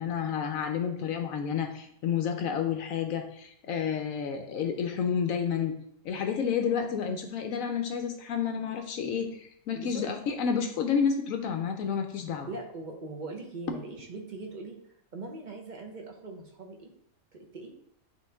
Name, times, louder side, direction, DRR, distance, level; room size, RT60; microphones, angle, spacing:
voice 1, 0.0-5.7 6.0-12.5, left 7 dB, 75° left, 5 dB, 1.0 m, -30 dB
voice 2, 9.7-10.0 12.5-14.8 15.1-16.9 17.3-17.7, right 3 dB, 35° right, 2 dB, 1.0 m, -41 dB
9.2 x 3.1 x 3.4 m, 0.70 s
omnidirectional pair, 1.5 m